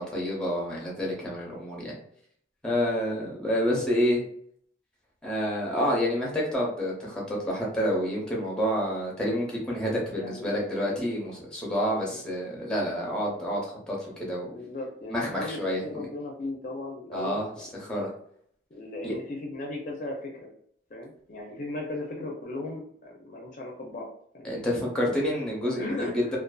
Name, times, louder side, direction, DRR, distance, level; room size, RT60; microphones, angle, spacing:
voice 1, 0.0-2.0 2.6-4.2 5.2-14.5 15.1-15.8 17.1-18.1 19.0-19.2 24.4-26.4, equal, 5° left, -3 dB, 0.7 m, -28 dB
voice 2, 10.1-10.6 10.8-11.0 12.1-12.2 14.4-18.0 18.7-20.5 20.9-24.1 24.3-24.5 25.8-26.3, left 2 dB, 45° left, 0 dB, 0.5 m, -37 dB
2.5 x 2.3 x 2.3 m, 0.64 s
head